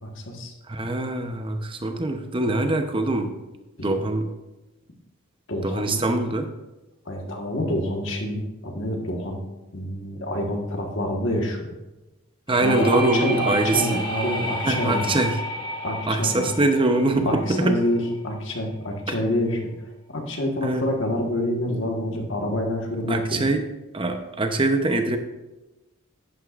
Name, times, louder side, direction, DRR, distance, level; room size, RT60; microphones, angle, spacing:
voice 1, 0.0-0.5 3.8-4.0 5.5-6.1 7.0-9.4 9.7-11.7 12.6-15.1 15.8-16.5 17.2-19.7 20.1-23.5, left 1 dB, 60° left, 2 dB, 1.5 m, -27 dB
voice 2, 0.7-3.3 3.8-4.3 5.6-6.5 12.5-14.0 14.6-15.4 16.1-17.8 20.6-20.9 23.1-23.6 23.9-25.2, right 2 dB, 25° right, 6 dB, 0.8 m, -23 dB
sound 1, 12.5-18.1, equal, 20° left, 1.4 m, -31 dB
11.0 x 9.4 x 2.5 m, 1.1 s
head